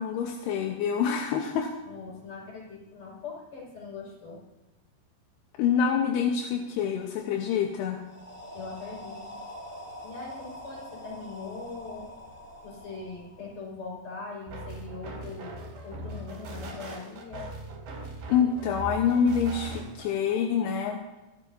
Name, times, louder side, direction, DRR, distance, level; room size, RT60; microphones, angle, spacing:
voice 1, 0.0-1.7 5.6-8.0 18.3-21.0, left 7 dB, 80° left, 2 dB, 3.1 m, -26 dB
voice 2, 1.9-4.4 8.5-9.4 10.0-12.1 12.6-15.6 15.8-17.5, left 4 dB, 40° left, -4 dB, 6.6 m, -41 dB
sound 1, 8.0-13.9, left 1 dB, 5° left, 1.9 m, -44 dB
sound 2, 14.5-20.1, right 1 dB, 80° right, 5.6 m, -40 dB
25.0 x 12.5 x 2.8 m, 1.0 s
omnidirectional pair, 4.8 m